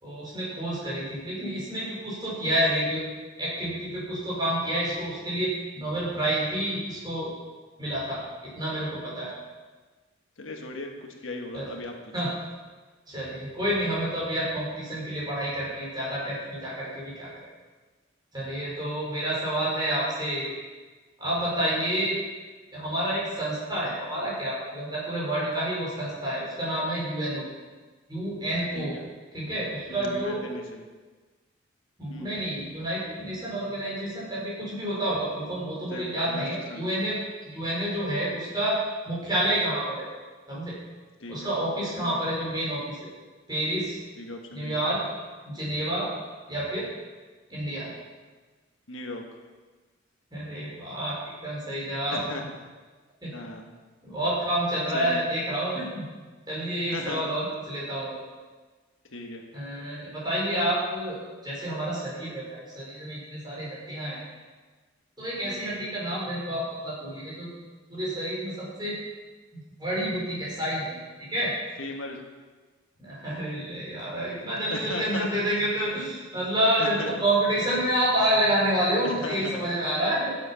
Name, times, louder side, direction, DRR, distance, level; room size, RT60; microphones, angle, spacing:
voice 1, 0.0-3.1 3.4-7.3 7.8-8.2 8.5-9.3 11.5-11.6 12.1-12.3 13.1-17.3 18.3-20.5 21.2-22.2 22.7-27.4 28.1-28.9 29.3-30.5 32.0-37.2 37.4-38.8 39.1-40.1 40.5-40.8 41.3-43.1 43.5-44.0 44.5-45.0 45.5-46.1 46.5-46.9 47.5-47.9 50.3-51.2 51.4-52.2 53.2-53.3 54.0-56.0 56.5-58.2 59.5-61.2 61.4-64.2 65.2-67.5 67.9-69.0 69.5-70.9 71.3-71.5 73.0-80.3, right 1 dB, 20° right, -6 dB, 4.5 m, -29 dB
voice 2, 10.4-11.9 28.7-29.0 29.9-30.8 32.1-32.4 35.9-36.4 36.7-36.9 41.2-41.5 42.0-42.2 44.2-44.8 48.9-49.2 52.1-52.5 53.3-53.7 54.9-55.2 56.9-57.3 59.1-59.4 65.4-65.6 71.8-72.2 74.7-75.3 75.6-75.7 76.8-77.1 79.0-79.6, left 2 dB, 80° left, 2 dB, 1.4 m, -37 dB
12.0 x 7.7 x 5.7 m, 1.3 s
head